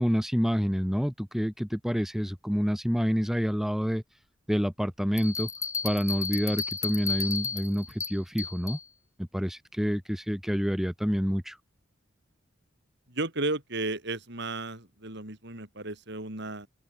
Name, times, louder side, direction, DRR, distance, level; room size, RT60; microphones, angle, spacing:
voice 1, 0.0-4.2 4.5-5.5 5.8-8.8 9.2-11.6, equal, ahead, 1.8 m, -28 dB
Bell, 5.2-8.8, left 4 dB, 15° left, 3.1 m, -33 dB
voice 2, 13.1-16.7, right 2 dB, 60° right, 5.5 m, -34 dB
open air
head